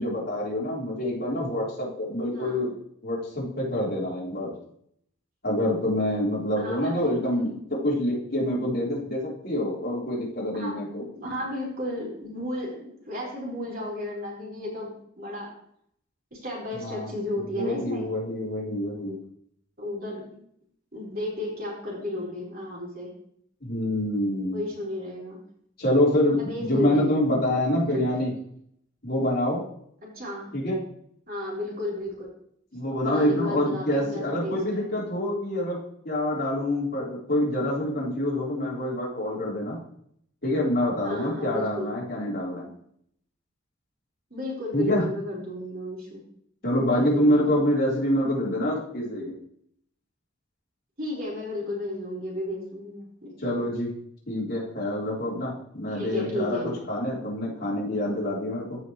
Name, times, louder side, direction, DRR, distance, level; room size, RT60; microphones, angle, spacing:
voice 1, 0.0-2.8 3.0-4.5 5.4-11.0 16.8-17.1 17.5-19.2 23.6-24.6 25.8-28.3 29.0-29.6 30.5-30.8 32.7-35.8 36.0-39.8 40.4-42.7 44.7-45.1 46.6-49.3 53.4-53.9 54.3-56.6 56.9-58.8, left 1 dB, 55° left, -6 dB, 4.0 m, -26 dB
voice 2, 2.3-2.6 6.6-7.5 10.5-10.8 11.1-15.5 16.3-18.1 19.8-20.4 20.9-23.1 24.5-25.4 26.4-27.1 27.7-27.8 28.1-28.2 30.1-30.5 31.3-32.3 33.0-34.9 41.0-42.0 44.3-46.2 46.9-47.6 51.0-53.6 55.9-56.8, left 1 dB, 50° right, -5 dB, 4.0 m, -33 dB
15.0 x 5.4 x 3.2 m, 0.67 s
head